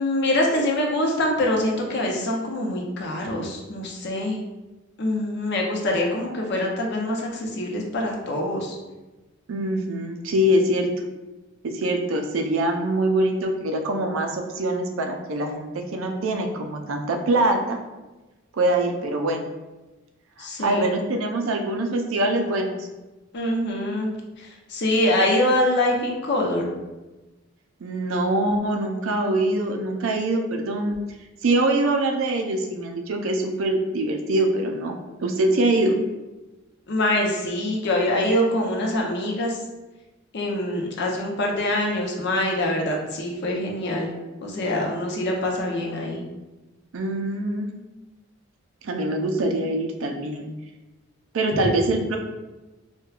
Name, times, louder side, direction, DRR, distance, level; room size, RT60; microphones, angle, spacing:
voice 1, 0.0-4.4 5.0-8.8 20.4-20.8 23.3-24.1 24.4-26.7 36.9-39.6 40.3-44.2 44.4-46.2, left 1 dB, 60° left, 0 dB, 0.6 m, -24 dB
voice 2, 9.5-10.9 11.6-17.8 18.5-19.5 20.4-22.9 27.8-31.0 31.4-35.0 35.2-36.0 46.9-47.7 48.8-50.5 51.3-52.2, right 1 dB, 80° right, 3 dB, 0.5 m, -24 dB
4.4 x 2.2 x 2.4 m, 1.1 s
head